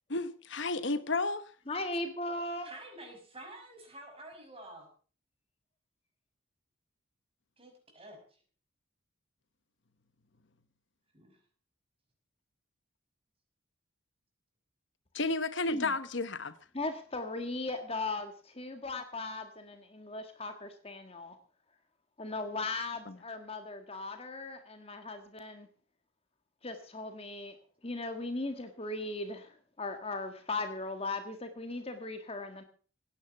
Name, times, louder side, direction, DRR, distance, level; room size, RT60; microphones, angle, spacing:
voice 1, 0.1-1.5 15.1-16.5 23.1-23.2, left 3 dB, 60° left, 1.0 m, -32 dB
voice 2, 1.7-2.7 15.7-15.9 16.7-21.4 22.2-25.7 26.6-27.5 27.8-29.5 29.8-32.6, left 2 dB, 30° left, 1.6 m, -38 dB
voice 3, 2.6-4.8 7.6-8.4 11.1-11.4, right 1 dB, 25° right, 5.8 m, -49 dB
17.5 x 10.5 x 6.9 m
head